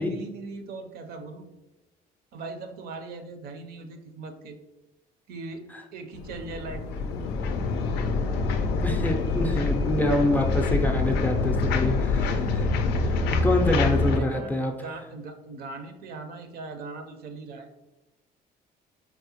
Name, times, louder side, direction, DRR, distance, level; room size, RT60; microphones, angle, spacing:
voice 1, 0.0-1.5 2.3-4.6 5.3-7.1 14.0-17.7, right 3 dB, 65° right, 6 dB, 0.5 m, -40 dB
sound 1, 6.1-14.2, left 3 dB, 80° left, 0.4 m, -25 dB
voice 2, 8.8-12.7 13.1-13.2 13.4-14.7, left 1 dB, 10° left, 1 dB, 0.4 m, -26 dB
4.4 x 2.0 x 2.8 m, 1.0 s
cardioid pair, 110°, 17 cm